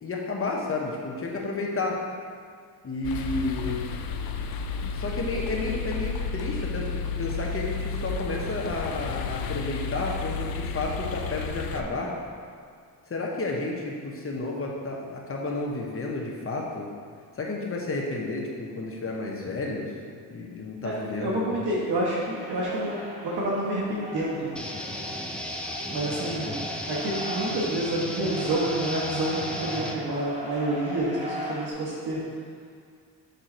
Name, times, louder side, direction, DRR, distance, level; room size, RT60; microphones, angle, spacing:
voice 1, 0.0-2.0 2.8-3.8 4.9-12.1 13.1-16.9 17.4-19.9 20.3-21.6, left 2 dB, 35° left, -1 dB, 1.1 m, -31 dB
sound 1, 3.0-11.8, left 5 dB, 65° left, 0.6 m, -32 dB
voice 2, 20.8-24.5 25.9-32.2, right 1 dB, 75° right, -5 dB, 1.4 m, -29 dB
sound 2, 22.3-31.7, equal, 20° right, 1.5 m, -38 dB
sound 3, 24.6-29.9, equal, 5° left, 0.5 m, -35 dB
6.7 x 3.8 x 4.5 m, 2.1 s
cardioid pair, 90°, 39 cm